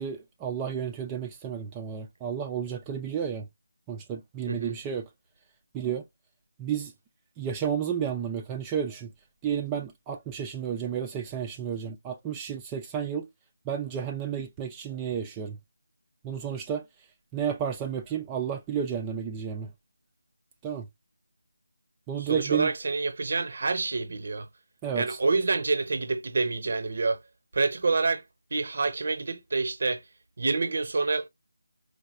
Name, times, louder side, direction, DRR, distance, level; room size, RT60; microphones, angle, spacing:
voice 1, 0.0-3.5 3.9-5.1 5.7-6.0 6.6-6.9 7.4-9.1 9.4-13.3 13.6-15.6 16.2-19.7 20.6-20.9 22.1-22.7 24.8-25.2, right 8 dB, 10° right, 0.3 m, -32 dB
voice 2, 22.2-24.5 24.9-27.2 27.5-28.2 28.5-30.0 30.4-31.3, right 3 dB, 50° right, 0.6 m, -27 dB
4.6 x 2.1 x 2.5 m
figure-of-eight pair, 170°, 0 cm